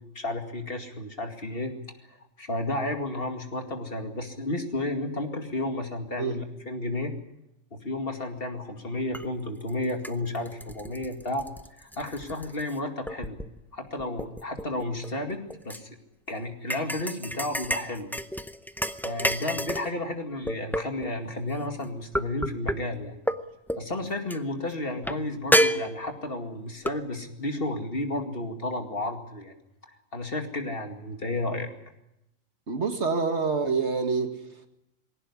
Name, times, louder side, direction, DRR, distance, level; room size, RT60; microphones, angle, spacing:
voice 1, 0.1-1.7 2.1-7.1 7.7-11.5 11.8-13.4 13.7-16.0 16.3-18.1 19.0-23.1 23.7-29.6 30.1-31.7, left 2 dB, 45° left, 5 dB, 2.5 m, -32 dB
sound 1, 9.1-9.3 9.7-12.7 13.1-13.6 14.0-15.8 16.7-19.9 20.5-21.1 22.1-22.8 23.3-23.4 23.7-23.9 24.3-24.4 25.0-25.2 25.5-26.3 26.9-27.0, equal, ahead, 0.5 m, -29 dB
voice 2, 32.7-34.7, right 4 dB, 60° right, 6 dB, 2.1 m, -27 dB
20.5 x 17.5 x 9.7 m, 0.85 s
omnidirectional pair, 1.3 m